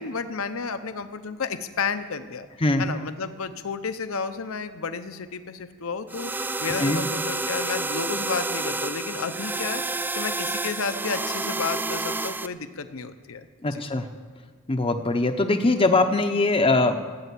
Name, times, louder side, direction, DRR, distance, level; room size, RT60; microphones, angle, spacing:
voice 1, 0.0-2.5 2.8-6.3 6.6-9.8 10.2-13.8, left 5 dB, 65° left, 10 dB, 0.7 m, -31 dB
sound 1, 6.1-12.5, right 2 dB, 10° right, 0.3 m, -29 dB
voice 2, 6.6-7.0 13.6-14.1 14.7-17.1, left 2 dB, 25° left, 4 dB, 0.7 m, -22 dB
15.5 x 8.9 x 8.4 m, 1.5 s
head